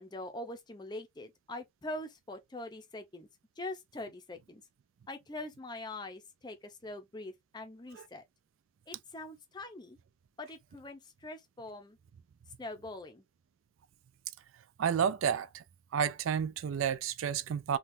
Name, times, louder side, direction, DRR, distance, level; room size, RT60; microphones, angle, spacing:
voice 1, 0.0-3.3 3.6-4.6 5.1-8.2 8.9-10.0 10.4-12.0 12.6-13.2, left 2 dB, 20° left, 0.5 m, -43 dB
voice 2, 14.8-15.6 15.9-17.8, right 7 dB, 85° right, 0.4 m, -31 dB
3.5 x 2.3 x 2.6 m
head